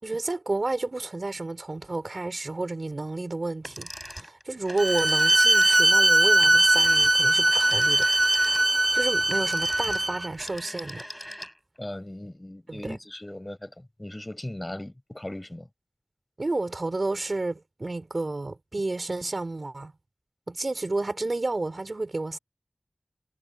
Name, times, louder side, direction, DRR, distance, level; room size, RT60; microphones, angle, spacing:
voice 1, 0.0-8.1 8.9-11.0 12.7-13.0 16.4-19.9 20.5-22.4, right 2 dB, 60° right, 4.2 m, -31 dB
sound 1, 3.6-11.8, equal, ahead, 3.3 m, -41 dB
Bowed string instrument, 4.8-10.3, right 1 dB, 40° right, 0.6 m, -21 dB
voice 2, 11.8-15.7, left 1 dB, 25° left, 4.7 m, -38 dB
wide cardioid pair, 45°, 0 cm